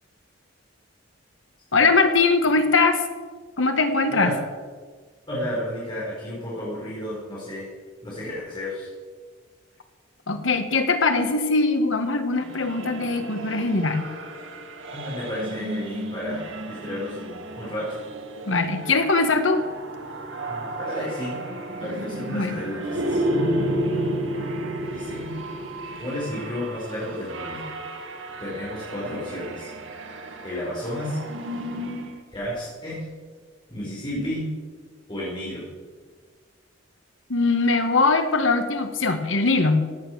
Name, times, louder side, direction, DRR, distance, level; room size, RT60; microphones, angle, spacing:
voice 1, 1.7-3.0 3.6-4.3 10.3-14.1 18.5-19.6 22.2-22.6 37.3-39.9, left 3 dB, 80° left, 7 dB, 1.6 m, -21 dB
voice 2, 5.3-7.7 8.0-8.9 14.9-18.0 20.5-21.3 21.8-23.3 24.9-25.3 26.0-27.7 28.4-29.7 30.4-31.2 32.3-33.0 33.7-34.5 35.1-35.6, left 1 dB, 25° left, -7 dB, 4.8 m, -32 dB
sound 1, 12.4-32.2, right 1 dB, 85° right, 1.8 m, -32 dB
16.5 x 8.9 x 6.6 m, 1.5 s
head